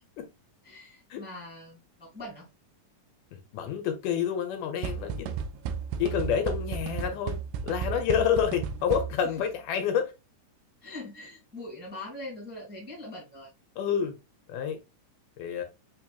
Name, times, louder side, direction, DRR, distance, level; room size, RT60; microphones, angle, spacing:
voice 1, 0.6-2.4 9.2-9.3 10.8-13.5, left 1 dB, 5° right, 1.6 m, -42 dB
voice 2, 3.3-5.4 6.0-7.4 7.6-10.1 13.8-14.1 14.5-14.8 15.4-15.6, left 8 dB, 80° left, 2.3 m, -28 dB
sound 1, 4.8-9.4, right 6 dB, 80° right, 1.9 m, -34 dB
5.1 x 3.0 x 2.3 m
omnidirectional pair, 3.5 m